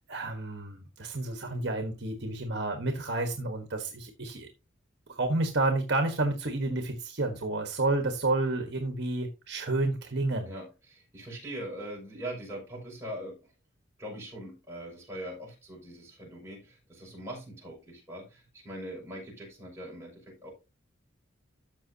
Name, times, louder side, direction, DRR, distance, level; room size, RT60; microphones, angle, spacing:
voice 1, 0.1-4.5 5.1-10.5, right 2 dB, 55° right, 1.3 m, -30 dB
voice 2, 10.5-13.4 14.0-20.5, right 1 dB, 15° right, 6.0 m, -41 dB
13.5 x 6.1 x 2.8 m
head